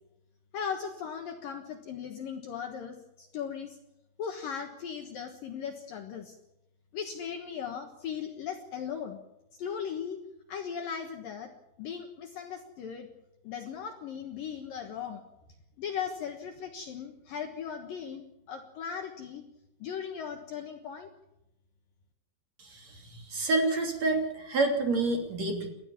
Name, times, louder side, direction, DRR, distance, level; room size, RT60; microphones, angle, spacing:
voice 1, 0.5-3.8 4.2-6.4 6.9-9.2 9.6-10.2 10.5-11.5 11.8-13.1 13.4-15.2 15.8-19.4 19.8-21.1, left 7 dB, 65° left, 4 dB, 2.5 m, -38 dB
voice 2, 22.6-25.7, right 2 dB, 40° right, 2 dB, 3.8 m, -28 dB
29.5 x 13.5 x 7.2 m, 0.92 s
omnidirectional pair, 5.3 m